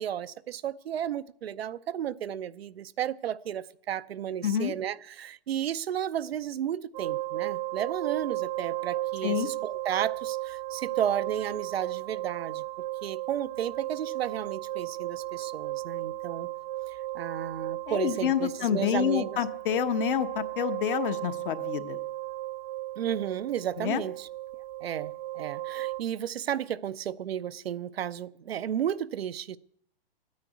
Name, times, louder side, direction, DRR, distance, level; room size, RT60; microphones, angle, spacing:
voice 1, 0.0-12.7 13.0-16.5 16.9-19.4 23.0-24.3 24.8-29.6, right 10 dB, 80° right, 0.7 m, -33 dB
voice 2, 4.4-4.7 9.2-9.5 17.9-22.0 23.8-24.0, left 9 dB, 60° left, 1.2 m, -28 dB
sound 1, 6.9-26.0, right 16 dB, 55° right, 0.9 m, -35 dB
12.5 x 9.6 x 8.1 m
hypercardioid pair, 140°, 30 cm